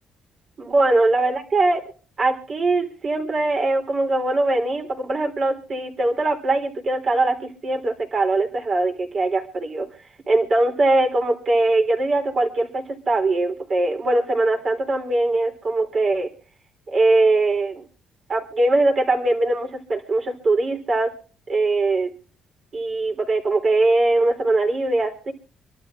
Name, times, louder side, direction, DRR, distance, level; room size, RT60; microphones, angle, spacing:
voice 1, 0.6-1.8 2.2-9.9 10.3-16.3 16.9-17.8 18.3-21.1 21.5-22.1 22.7-25.3, right 2 dB, 50° right, 3 dB, 3.6 m, -21 dB
27.0 x 12.0 x 2.5 m, 0.41 s
cardioid pair, 90°, 0 cm